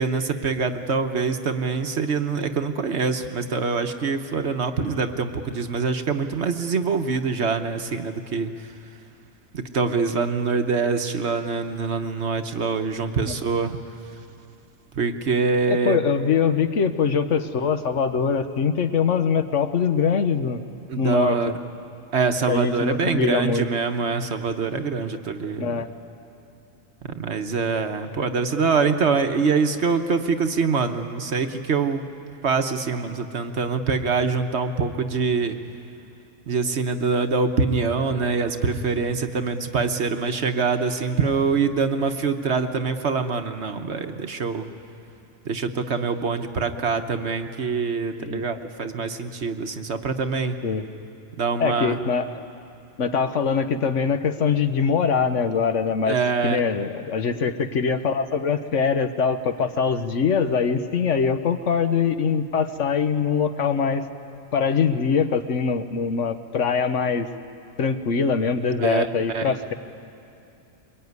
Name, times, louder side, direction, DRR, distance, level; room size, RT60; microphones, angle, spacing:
voice 1, 0.0-8.5 9.5-13.8 14.9-16.0 20.9-21.5 22.1-25.7 27.1-32.0 32.4-35.6 36.5-44.7 45.4-50.6 51.4-52.0 56.1-56.6 68.8-69.1 69.3-69.7, right 4 dB, 55° right, 7 dB, 1.2 m, -24 dB
voice 2, 15.7-20.6 21.0-21.4 22.5-23.7 25.6-25.9 48.2-48.4 50.6-50.9 51.6-52.4 53.0-64.0 64.5-67.3 67.8-69.7, left 6 dB, 60° left, 9 dB, 1.2 m, -23 dB
23.0 x 21.5 x 9.5 m, 2.6 s
omnidirectional pair, 1.5 m